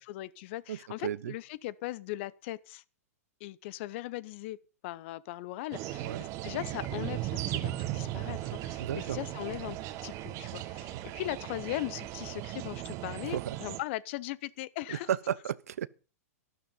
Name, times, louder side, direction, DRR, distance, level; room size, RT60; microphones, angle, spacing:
voice 1, 0.0-2.8 3.4-15.1, left 17 dB, 50° left, 0.8 m, -39 dB
voice 2, 0.7-1.3 6.0-6.2 8.8-9.2 13.2-13.6 14.9-15.9, right 10 dB, 70° right, 0.7 m, -34 dB
sound 1, 5.7-13.8, right 14 dB, 35° right, 1.4 m, -37 dB
12.0 x 12.0 x 5.4 m
hypercardioid pair, 120°, 8 cm